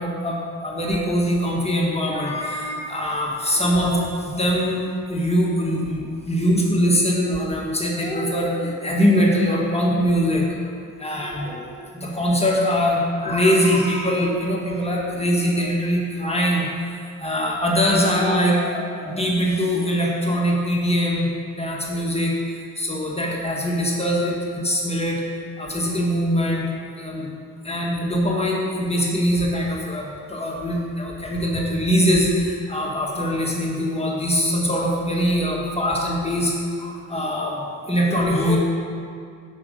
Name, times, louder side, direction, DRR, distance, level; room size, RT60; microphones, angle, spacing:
voice 1, 0.0-10.7 11.0-21.3 21.6-22.3 22.7-25.2 25.6-26.7 26.9-27.3 27.6-38.6, equal, 15° left, -3 dB, 1.7 m, -22 dB
7.3 x 6.5 x 5.3 m, 2.3 s
supercardioid pair, 55°, 35 cm